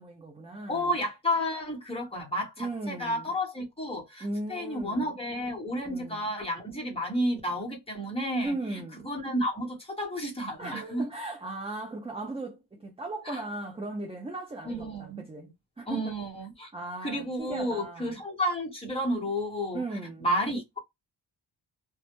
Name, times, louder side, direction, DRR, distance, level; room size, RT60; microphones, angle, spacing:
voice 1, 0.0-0.9 2.6-3.3 4.2-5.2 5.9-6.3 8.4-9.1 10.6-16.1 16.7-18.2 19.7-20.3, right 2 dB, 15° right, 0.4 m, -37 dB
voice 2, 0.7-8.5 9.0-11.0 13.3-13.4 14.6-15.2 15.9-16.7 17.0-19.8 20.2-20.8, equal, 15° left, 0.9 m, -31 dB
2.2 x 2.1 x 2.8 m
wide cardioid pair, 125°, 43 cm